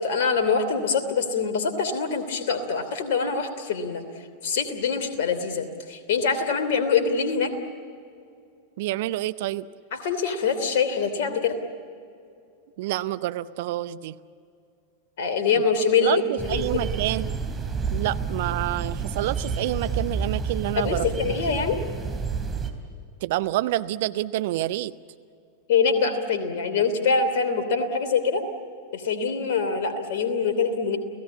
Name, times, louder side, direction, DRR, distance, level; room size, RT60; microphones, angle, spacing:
voice 1, 0.0-4.0 4.4-7.5 9.9-11.6 15.2-16.2 16.5-16.9 20.8-21.8 25.7-28.4 28.9-31.0, left 5 dB, 55° left, 9 dB, 2.9 m, -24 dB
voice 2, 8.8-9.7 12.8-14.2 15.5-15.6 16.0-17.3 17.9-21.1 23.2-24.9, right 15 dB, 50° right, 14 dB, 0.7 m, -28 dB
sound 1, 16.4-22.7, right 5 dB, 15° right, 3.3 m, -29 dB
30.0 x 17.5 x 8.5 m, 2.4 s
figure-of-eight pair, 90°, 0 cm